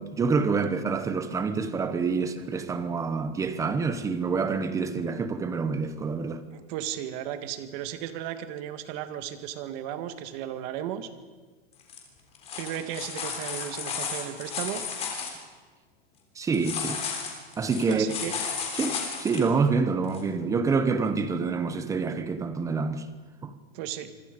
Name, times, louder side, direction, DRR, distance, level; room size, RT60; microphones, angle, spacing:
voice 1, 0.0-6.4 16.4-17.0 17.6-18.1 18.7-23.1 23.4-23.5, right 4 dB, 10° right, 1.0 m, -27 dB
voice 2, 6.5-11.1 12.6-14.8 17.9-18.3 23.7-24.1, right 10 dB, 40° right, 1.7 m, -35 dB
sound 1, 11.8-12.0 12.3-15.3 16.5-19.4 20.1-20.2, left 6 dB, 20° left, 3.5 m, -33 dB
26.0 x 25.0 x 5.2 m
supercardioid pair, 165°, 31 cm